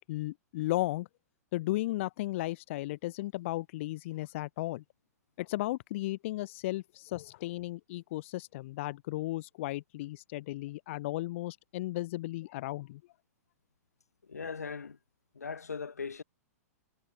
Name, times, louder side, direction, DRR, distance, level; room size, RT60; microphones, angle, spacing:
voice 1, 0.1-1.1 1.5-4.8 5.4-13.0, left 17 dB, 50° left, 0.6 m, -35 dB
voice 2, 14.3-15.0 15.3-16.2, left 5 dB, 80° left, 2.0 m, -39 dB
figure-of-eight pair, 105°, 8 cm